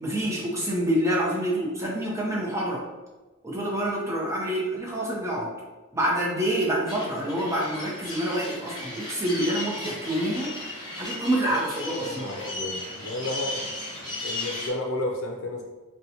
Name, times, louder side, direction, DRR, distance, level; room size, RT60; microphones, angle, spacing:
voice 1, 0.0-2.8 3.4-5.5 5.9-10.5 10.9-12.3, right 1 dB, 15° right, -4 dB, 0.6 m, -27 dB
sound 1, 6.9-14.7, left 1 dB, 20° left, 1.0 m, -35 dB
voice 2, 12.0-13.8 14.0-15.6, left 2 dB, 75° left, 1 dB, 0.6 m, -32 dB
4.0 x 2.2 x 2.8 m, 1.2 s
head